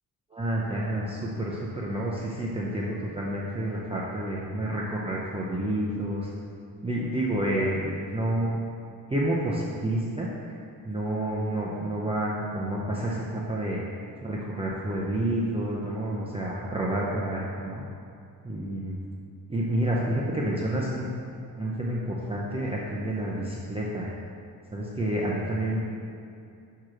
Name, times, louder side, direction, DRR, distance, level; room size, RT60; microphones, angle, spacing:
voice 1, 0.3-6.3 6.8-8.6 9.1-10.3 10.8-13.8 14.2-17.8 18.4-19.0 19.5-21.1 21.5-24.1 24.7-25.8, right 1 dB, 15° right, -5 dB, 0.5 m, -29 dB
6.2 x 4.6 x 4.9 m, 2.6 s
wide cardioid pair, 170°, 37 cm